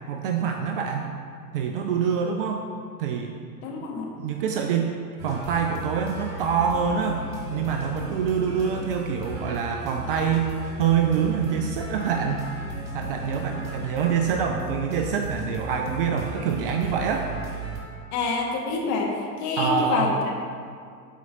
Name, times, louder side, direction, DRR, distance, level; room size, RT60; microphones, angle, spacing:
voice 1, 0.1-1.1 1.5-2.7 3.0-3.4 4.2-5.0 5.2-7.2 7.5-17.3 19.6-20.1, right 7 dB, 40° right, 3 dB, 0.4 m, -26 dB
voice 2, 3.6-4.1 18.1-20.3, left 3 dB, 35° left, -1 dB, 1.2 m, -27 dB
sound 1, 5.2-17.8, right 1 dB, 70° right, 1.8 m, -36 dB
13.0 x 4.5 x 2.5 m, 2.2 s
figure-of-eight pair, 85°, 48 cm